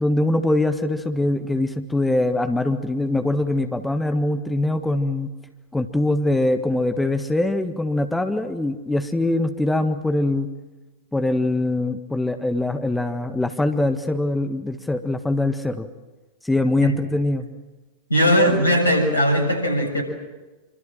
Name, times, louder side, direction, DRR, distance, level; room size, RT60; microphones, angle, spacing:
voice 1, 0.0-5.3 5.7-10.5 11.1-15.9 16.4-17.5, left 2 dB, 5° left, 8 dB, 1.6 m, -23 dB
voice 2, 18.1-20.0, equal, 80° left, 7 dB, 6.7 m, -19 dB
27.5 x 25.5 x 7.6 m, 1.2 s
figure-of-eight pair, 90°, 0 cm